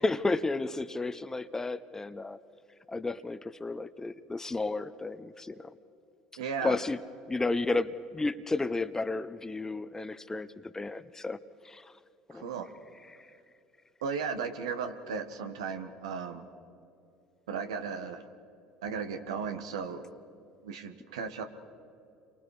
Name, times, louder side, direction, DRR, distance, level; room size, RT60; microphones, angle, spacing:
voice 1, 0.0-2.4 2.9-5.7 6.6-7.0 7.3-11.4 11.6-11.9 12.3-12.5 13.1-13.3, left 3 dB, 15° left, 13 dB, 1.0 m, -32 dB
voice 2, 6.4-6.8 12.3-12.7 14.0-16.5 17.5-18.2 18.8-20.0 20.6-21.4, right 6 dB, 80° right, 7 dB, 1.6 m, -35 dB
30.0 x 24.0 x 5.0 m, 2.7 s
hypercardioid pair, 70°, 3 cm